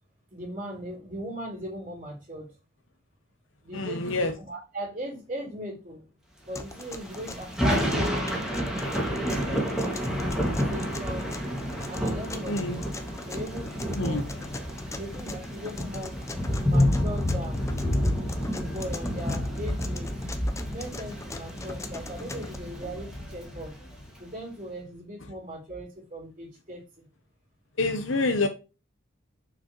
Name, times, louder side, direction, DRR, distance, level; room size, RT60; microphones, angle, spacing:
voice 1, 0.3-2.5 3.6-6.0 6.4-8.4 8.9-11.3 11.9-12.8 13.3-14.3 14.9-16.2 16.6-17.6 18.5-20.1 20.7-23.7 24.2-27.0, equal, 40° right, -2 dB, 3.3 m, -38 dB
voice 2, 3.7-4.3 12.5-12.8 14.0-14.2 27.8-28.5, left 2 dB, 70° left, 6 dB, 0.9 m, -27 dB
sound 1, 6.6-22.6, left 2 dB, 15° left, 0.7 m, -42 dB
Thunder / Rain, 6.7-24.2, equal, 5° right, 2.2 m, -29 dB
6.9 x 6.1 x 3.1 m, 0.30 s
head